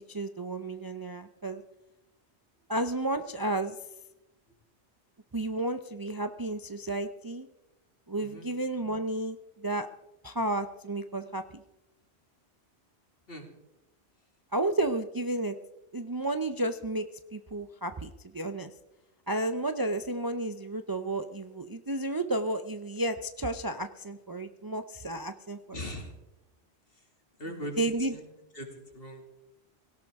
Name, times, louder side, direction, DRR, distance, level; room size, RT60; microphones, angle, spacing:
voice 1, 0.0-1.6 2.7-3.8 5.3-7.5 8.1-9.9 10.2-11.6 14.5-15.5 15.9-18.1 18.3-18.7 19.3-25.8 27.8-28.1, right 2 dB, 25° right, 8 dB, 0.5 m, -32 dB
voice 2, 25.7-26.1 27.4-27.8 28.1-28.2 28.5-28.7 28.9-29.2, equal, 60° left, 3 dB, 2.8 m, -39 dB
18.0 x 17.0 x 3.6 m, 0.95 s
omnidirectional pair, 1.1 m